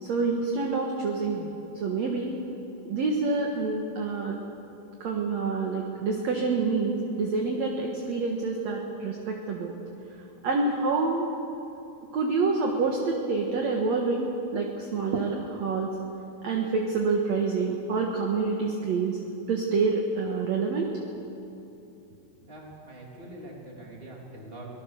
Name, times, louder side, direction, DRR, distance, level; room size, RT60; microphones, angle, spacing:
voice 1, 0.0-1.5 1.8-2.3 2.9-4.4 5.0-9.7 10.4-11.3 12.1-14.3 14.5-16.0 16.4-19.2 19.5-20.9, right 4 dB, 55° right, 1 dB, 2.3 m, -27 dB
voice 2, 22.5-24.7, right 1 dB, 15° right, -2 dB, 3.3 m, -44 dB
24.5 x 19.0 x 6.8 m, 2.9 s
omnidirectional pair, 4.5 m